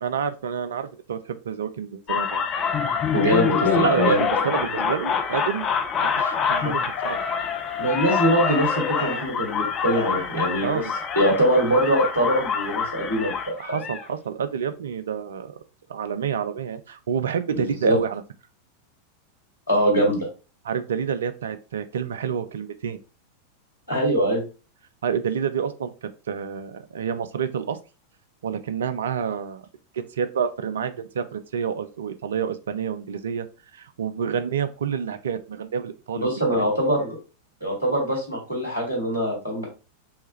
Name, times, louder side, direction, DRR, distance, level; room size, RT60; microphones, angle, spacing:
voice 1, 0.0-2.4 3.8-5.7 6.2-7.3 10.6-10.9 13.6-15.5 15.9-18.2 20.6-23.0 25.0-27.8 28.4-29.6 29.9-33.5 33.7-36.3 36.6-36.7, right 7 dB, 65° right, 11 dB, 0.4 m, -28 dB
sound 1, 2.1-14.1, left 6 dB, 30° left, 0.6 m, -26 dB
voice 2, 3.1-4.2 7.8-10.8 11.1-13.8 17.5-18.0 19.7-20.3 23.9-24.4 36.2-37.2 37.6-39.7, right 1 dB, 80° left, -3 dB, 2.4 m, -23 dB
sound 2, 6.0-7.3 8.1-9.3 9.9-10.3, left 4 dB, 55° left, 0.9 m, -33 dB
5.4 x 2.3 x 3.1 m, 0.32 s
figure-of-eight pair, 90°, 0 cm